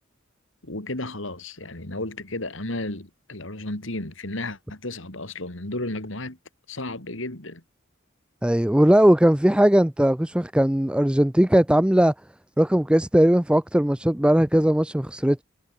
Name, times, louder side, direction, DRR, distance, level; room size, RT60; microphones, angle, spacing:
voice 1, 0.6-6.4 6.7-7.6, left 2 dB, 70° left, 3.5 m, -33 dB
voice 2, 8.4-12.1 12.6-15.4, right 1 dB, 5° right, 0.5 m, -19 dB
head